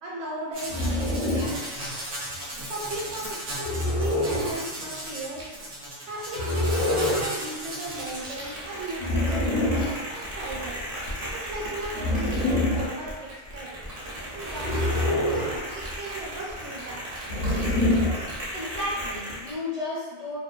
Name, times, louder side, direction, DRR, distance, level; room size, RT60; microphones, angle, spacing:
voice 1, 0.0-1.5 2.7-5.5 6.1-9.8 10.2-10.8 11.3-13.9 14.3-17.1, right 2 dB, 70° right, -4 dB, 0.9 m, -36 dB
sound 1, 0.5-19.5, equal, 50° right, 0.4 m, -36 dB
sound 2, 0.7-1.6 3.6-4.6 6.3-7.3 9.0-10.0 11.9-12.9 14.6-15.6 17.3-18.3, left 1 dB, 75° left, 1.0 m, -25 dB
voice 2, 18.5-20.4, left 2 dB, 50° left, -8 dB, 0.5 m, -33 dB
2.6 x 2.1 x 2.3 m, 1.3 s
omnidirectional pair, 1.3 m